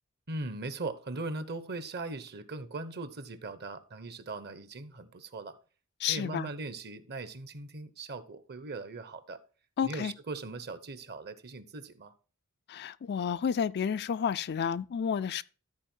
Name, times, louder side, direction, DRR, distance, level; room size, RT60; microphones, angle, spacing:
voice 1, 0.3-5.6 6.1-9.4 9.8-12.1, right 3 dB, 50° right, 1.0 m, -39 dB
voice 2, 6.0-6.5 9.8-10.1 12.7-15.4, left 7 dB, 50° left, 0.4 m, -31 dB
13.5 x 4.5 x 4.5 m
head